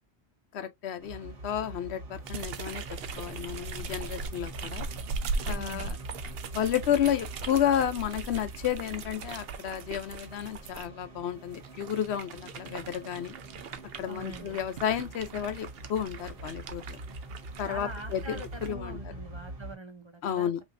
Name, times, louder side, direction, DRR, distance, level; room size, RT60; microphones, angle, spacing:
voice 1, 0.5-2.8 3.2-4.9 5.5-6.0 6.5-13.3 14.0-17.0 17.6-19.0 20.2-20.6, left 10 dB, 70° left, 0.9 m, -31 dB
sound 1, 1.0-19.8, right 1 dB, 80° right, 2.4 m, -44 dB
sound 2, 2.2-10.9 11.5-18.7, right 4 dB, 65° right, 0.8 m, -40 dB
voice 2, 5.4-6.0 14.1-14.6 17.7-20.5, right 1 dB, 30° right, 0.7 m, -43 dB
5.2 x 3.0 x 2.6 m
omnidirectional pair, 1.2 m